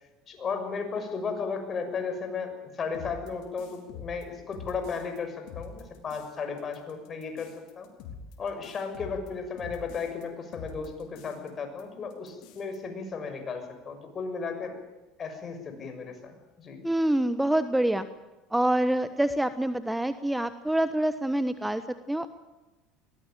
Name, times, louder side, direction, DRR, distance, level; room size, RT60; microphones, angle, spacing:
voice 1, 0.3-7.5 7.7-7.9 8.4-14.8 15.2-16.8, left 5 dB, 35° left, 7 dB, 6.6 m, -35 dB
sound 1, 2.9-5.2 5.5-6.3 6.6-10.2 10.5-11.5 11.8-11.9 12.1-12.8, left 5 dB, 65° left, 4.7 m, -45 dB
voice 2, 16.8-18.1 18.5-22.3, right 1 dB, 5° right, 11 dB, 1.2 m, -26 dB
22.0 x 19.5 x 9.2 m, 1.1 s
supercardioid pair, 90°, 0 cm